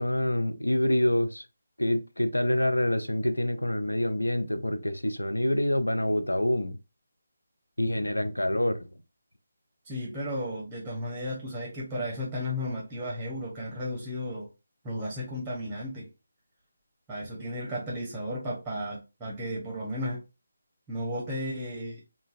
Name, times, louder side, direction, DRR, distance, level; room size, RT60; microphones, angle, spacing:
voice 1, 0.0-1.5 1.8-6.8 7.8-8.8, left 1 dB, 80° left, 0.5 m, -26 dB
voice 2, 9.8-14.5 14.8-16.1 17.1-20.2 20.9-22.0, equal, 5° right, 0.8 m, -34 dB
3.8 x 2.2 x 2.5 m
figure-of-eight pair, 150°, 0 cm